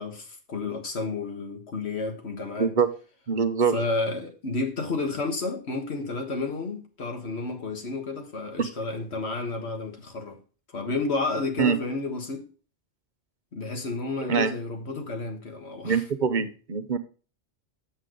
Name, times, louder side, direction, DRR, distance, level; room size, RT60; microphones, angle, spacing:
voice 1, 0.0-2.7 3.7-10.4 10.7-12.5 13.5-16.0, left 3 dB, 70° left, 1.9 m, -31 dB
voice 2, 3.3-3.8 11.6-11.8 14.2-14.5 15.8-17.0, right 6 dB, 45° right, 0.9 m, -24 dB
8.0 x 7.5 x 3.9 m
omnidirectional pair, 1.1 m